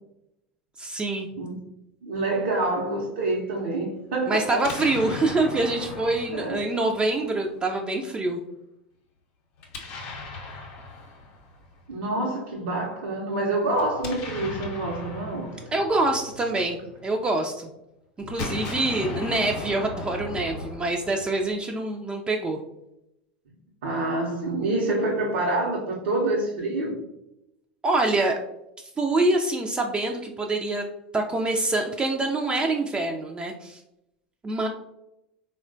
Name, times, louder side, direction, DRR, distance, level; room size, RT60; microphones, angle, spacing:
voice 1, 0.8-1.3 4.3-8.4 15.7-17.7 18.3-22.6 27.8-28.4 29.0-30.8 31.1-33.8 34.4-34.7, right 2 dB, 20° right, 2 dB, 0.3 m, -25 dB
voice 2, 2.0-4.6 6.3-6.6 11.9-15.5 23.8-26.9, right 2 dB, 75° right, -4 dB, 0.6 m, -27 dB
Explosion, 4.5-7.5 9.6-11.8 13.7-17.2 18.2-21.6, left 3 dB, 55° left, 0.6 m, -37 dB
3.5 x 2.1 x 2.5 m, 0.86 s
hypercardioid pair, 90°, 5 cm